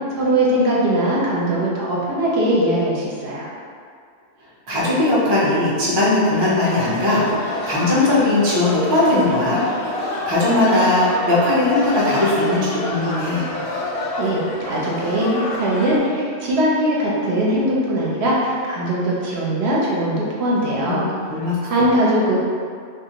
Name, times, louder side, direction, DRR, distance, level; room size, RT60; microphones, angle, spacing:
voice 1, 0.2-3.5 14.2-21.1 21.6-22.4, right 1 dB, 65° right, -5 dB, 0.8 m, -20 dB
voice 2, 4.7-9.6 10.2-13.5 20.8-21.9, left 2 dB, 35° right, -7 dB, 0.4 m, -19 dB
sound 1, 6.3-16.0, left 2 dB, 65° left, 0.7 m, -28 dB
2.4 x 2.4 x 2.8 m, 2.2 s
omnidirectional pair, 1.2 m